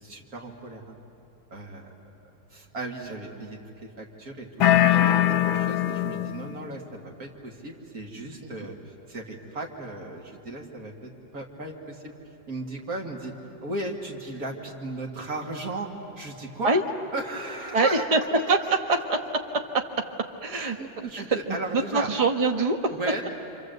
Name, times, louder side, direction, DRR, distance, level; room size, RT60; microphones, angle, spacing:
voice 1, 0.0-0.9 1.5-1.9 2.5-12.1 12.5-13.3 13.6-16.8 17.1-18.0 20.5-22.1 22.9-23.3, right 2 dB, 50° right, 0 dB, 2.6 m, -36 dB
sound 1, 4.6-6.5, left 12 dB, 85° left, 1.6 m, -21 dB
voice 2, 17.7-19.2 20.4-21.1 21.5-22.8, right 3 dB, 25° right, 4 dB, 1.0 m, -24 dB
28.5 x 26.0 x 8.0 m, 2.9 s
omnidirectional pair, 2.1 m